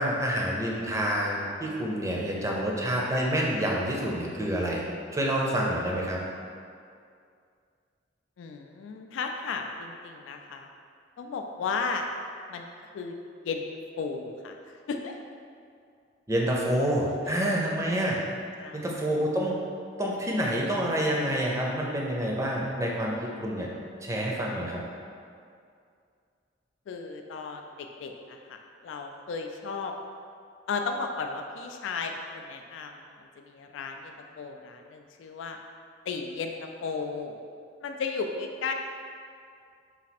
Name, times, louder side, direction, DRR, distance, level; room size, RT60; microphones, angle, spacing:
voice 1, 0.0-4.8 5.1-6.2 16.3-18.2 18.7-19.6 20.0-23.7 24.0-24.8, equal, 15° right, -2 dB, 0.5 m, -28 dB
voice 2, 8.4-10.7 11.2-12.1 12.5-13.2 13.4-13.7 14.0-15.2 18.6-18.8 26.9-29.9 30.7-35.6 36.1-37.4 37.8-38.7, left 4 dB, 85° left, 4 dB, 0.3 m, -35 dB
4.1 x 2.4 x 4.1 m, 2.3 s
head